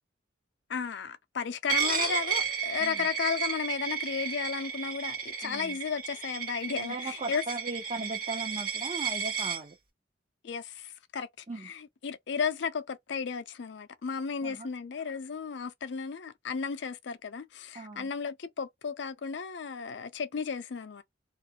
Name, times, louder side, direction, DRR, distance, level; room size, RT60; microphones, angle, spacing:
voice 1, 0.7-7.4 10.4-21.0, left 6 dB, 65° left, 0.4 m, -34 dB
Coin (dropping), 1.7-9.6, right 7 dB, 50° right, 1.1 m, -33 dB
voice 2, 5.4-5.8 6.8-9.8 11.5-11.7 14.4-14.7 17.7-18.1, right 2 dB, 30° right, 0.5 m, -38 dB
2.4 x 2.0 x 2.7 m
head